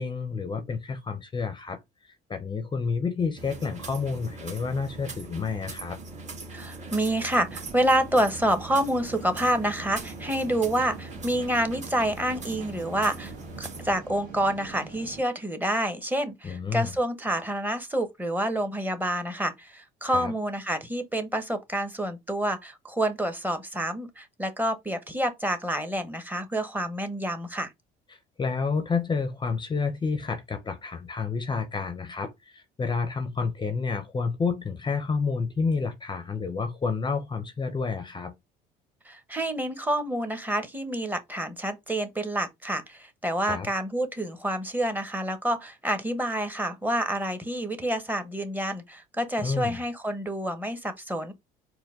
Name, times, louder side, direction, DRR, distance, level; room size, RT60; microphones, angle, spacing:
voice 1, 0.0-1.8 2.3-6.0 16.4-16.9 20.1-20.3 28.4-38.3 43.4-43.7 49.4-49.8, left 4 dB, 25° left, 0.6 m, -29 dB
sound 1, 3.4-14.0, right 2 dB, 40° right, 1.4 m, -41 dB
voice 2, 6.5-13.3 13.6-27.7 39.0-51.3, right 1 dB, 10° right, 0.9 m, -28 dB
sound 2, 7.4-15.2, right 4 dB, 65° right, 2.0 m, -44 dB
4.4 x 2.2 x 3.6 m
supercardioid pair, 85°, 19 cm